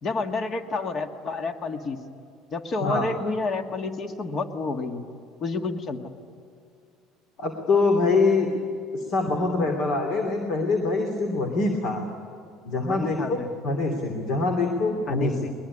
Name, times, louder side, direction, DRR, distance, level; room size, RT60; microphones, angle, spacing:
voice 1, 0.0-2.0 2.5-5.1 5.4-6.1 9.6-9.7 12.8-13.5 15.1-15.5, left 3 dB, 45° left, 6 dB, 1.9 m, -29 dB
voice 2, 7.4-8.5 8.9-12.0 12.6-13.4 13.6-15.3, left 3 dB, 65° left, 4 dB, 3.0 m, -24 dB
22.5 x 21.0 x 9.9 m, 2.4 s
supercardioid pair, 90°, 0 cm